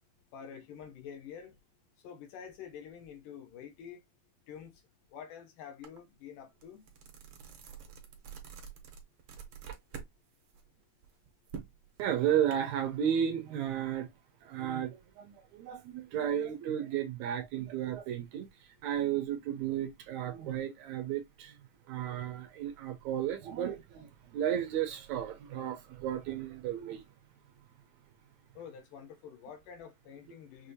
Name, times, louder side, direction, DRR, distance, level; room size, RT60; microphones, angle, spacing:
voice 1, 0.3-1.6 2.0-4.0 4.5-4.8 5.1-6.9 28.5-30.7, left 8 dB, 80° left, 2.7 m, -47 dB
sound 1, 5.8-6.0 6.4-10.1 10.5-12.5, right 7 dB, 65° right, 1.5 m, -47 dB
voice 2, 12.0-14.1 14.4-21.6 21.9-27.0, right 10 dB, 80° right, 1.8 m, -33 dB
6.2 x 2.6 x 2.7 m
omnidirectional pair, 3.7 m